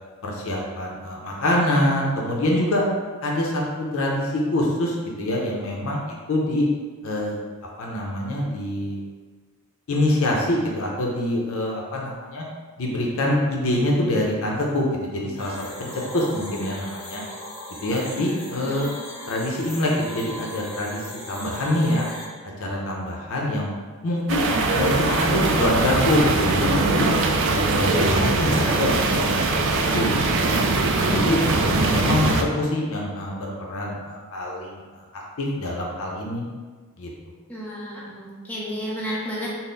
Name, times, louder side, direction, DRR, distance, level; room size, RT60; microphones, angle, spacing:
voice 1, 0.2-2.8 3.2-6.7 7.0-7.4 7.8-9.0 9.9-12.4 12.8-17.2 17.8-18.9 19.3-22.1 22.6-23.7 24.0-27.1 27.4-30.5 31.0-36.5 37.0-37.1, left 1 dB, 65° left, -2 dB, 0.6 m, -25 dB
sound 1, 15.3-22.3, left 1 dB, 25° left, 1.3 m, -38 dB
sound 2, 24.3-32.4, right 3 dB, 60° right, 0.4 m, -21 dB
voice 2, 37.5-39.5, equal, 5° left, -7 dB, 0.8 m, -32 dB
3.9 x 2.1 x 3.8 m, 1.4 s
head